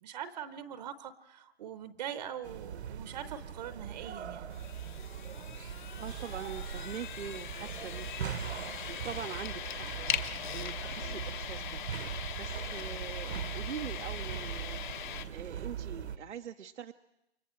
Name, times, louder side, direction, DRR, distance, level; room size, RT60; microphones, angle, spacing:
voice 1, 0.0-4.5, right 9 dB, 40° right, 12 dB, 0.8 m, -42 dB
sound 1, 2.4-16.2, right 8 dB, 70° right, 1.0 m, -40 dB
sound 2, 4.5-15.2, left 10 dB, 45° left, 1.2 m, -41 dB
voice 2, 6.0-8.3 8.9-9.9 10.5-11.8 12.1-14.8 15.3-16.9, right 8 dB, 90° right, 5 dB, 0.8 m, -43 dB
29.0 x 24.5 x 4.4 m, 0.89 s
hypercardioid pair, 150°, 34 cm